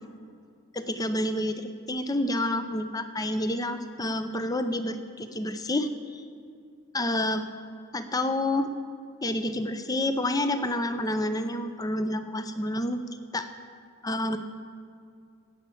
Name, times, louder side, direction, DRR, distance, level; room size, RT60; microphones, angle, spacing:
voice 1, 0.7-6.2 6.9-7.4 7.9-8.7 9.2-13.0 13.3-13.5 14.0-14.4, left 1 dB, 15° left, 9 dB, 0.6 m, -29 dB
16.0 x 5.6 x 8.5 m, 2.3 s
head